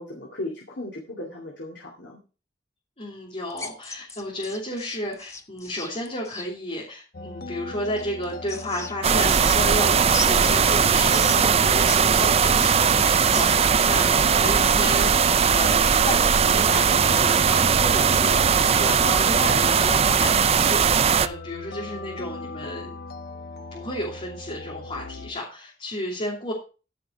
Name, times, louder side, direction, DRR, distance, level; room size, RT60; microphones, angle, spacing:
voice 1, 0.0-2.2, left 1 dB, 80° left, 0 dB, 2.5 m, -36 dB
voice 2, 3.0-22.9 23.7-26.5, left 1 dB, 35° left, -4 dB, 3.1 m, -32 dB
sound 1, 3.5-6.5 8.0-9.8 10.1-12.0 12.3-13.8, left 3 dB, 15° left, 1.2 m, -36 dB
sound 2, 7.1-25.3, left 3 dB, 60° left, 1.0 m, -39 dB
sound 3, 9.0-21.3, right 6 dB, 35° right, 0.5 m, -19 dB
15.0 x 5.8 x 4.7 m, 0.34 s
head